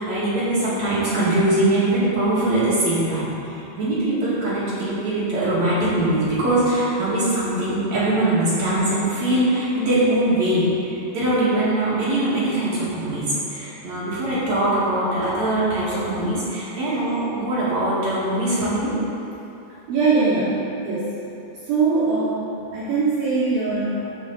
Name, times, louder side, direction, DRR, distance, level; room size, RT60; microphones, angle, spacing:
voice 1, 0.0-13.2 13.5-18.9, right 1 dB, 45° right, -10 dB, 2.5 m, -22 dB
voice 2, 19.9-21.2 21.6-24.2, right 4 dB, 65° right, -8 dB, 2.5 m, -22 dB
14.0 x 5.6 x 4.0 m, 2.9 s
omnidirectional pair, 5.7 m